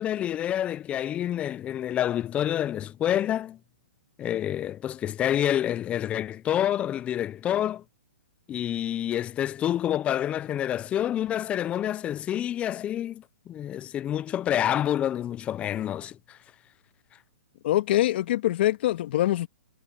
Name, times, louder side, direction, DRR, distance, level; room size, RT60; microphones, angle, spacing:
voice 1, 0.0-3.6 4.2-7.8 8.5-16.4, left 11 dB, 15° left, 0.5 m, -28 dB
voice 2, 17.6-19.5, left 14 dB, 50° left, 2.1 m, -24 dB
hypercardioid pair, 145°, 7 cm